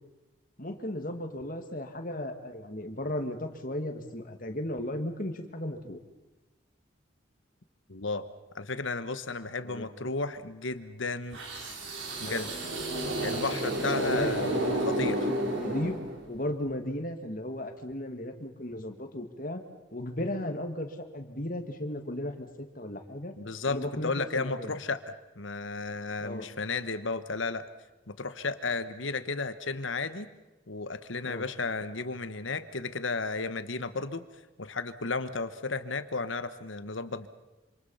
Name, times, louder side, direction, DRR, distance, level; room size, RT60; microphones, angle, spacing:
voice 1, 0.6-6.0 9.6-9.9 12.2-12.5 13.8-14.6 15.5-16.0 16.3-19.6 19.9-23.3 23.7-24.8 26.2-26.5 31.2-31.4, left 1 dB, 45° left, 5 dB, 2.3 m, -35 dB
voice 2, 7.9-8.3 8.5-11.4 12.2-12.5 13.2-15.3 23.4-27.6 28.1-30.3 30.7-34.2 34.6-37.3, left 3 dB, 80° left, 11 dB, 1.4 m, -33 dB
sound 1, 11.3-16.4, right 1 dB, 80° right, 4.4 m, -31 dB
27.0 x 26.5 x 5.7 m, 1.1 s
head